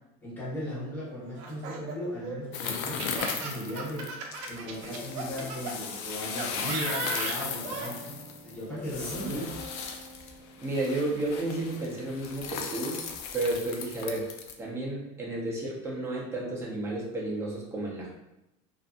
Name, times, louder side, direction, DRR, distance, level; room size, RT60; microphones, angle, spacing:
voice 1, 0.2-4.1 4.5-9.5, left 1 dB, 10° left, -9 dB, 1.1 m, -37 dB
Laughter, 1.4-5.7 6.4-7.9, right 4 dB, 80° right, 0.5 m, -36 dB
sound 1, 2.5-14.5, left 6 dB, 70° left, 0.4 m, -37 dB
sound 2, 4.5-13.6, equal, 35° right, 0.9 m, -51 dB
voice 2, 9.1-9.5 10.6-13.0 13.3-14.3 14.6-18.1, right 2 dB, 15° right, -3 dB, 0.6 m, -32 dB
2.6 x 2.5 x 2.4 m, 0.92 s
cardioid pair, 150°, 16 cm